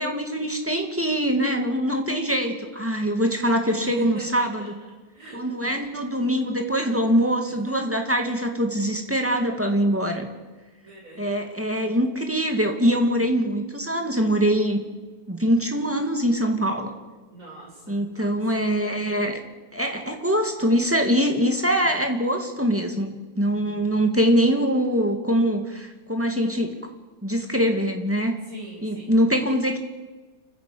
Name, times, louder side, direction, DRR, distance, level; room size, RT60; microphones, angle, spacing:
voice 1, 0.0-4.8 5.3-10.3 11.2-14.8 15.3-16.9 17.9-19.4 19.7-26.8 27.2-28.4 28.8-29.8, equal, 10° right, 3 dB, 2.3 m, -23 dB
voice 2, 4.1-4.5 5.1-5.4 10.8-11.4 11.8-11.9 17.3-18.6 23.4-23.8 28.5-29.1, right 1 dB, 55° right, -4 dB, 7.6 m, -43 dB
29.5 x 10.5 x 8.7 m, 1.2 s
omnidirectional pair, 1.7 m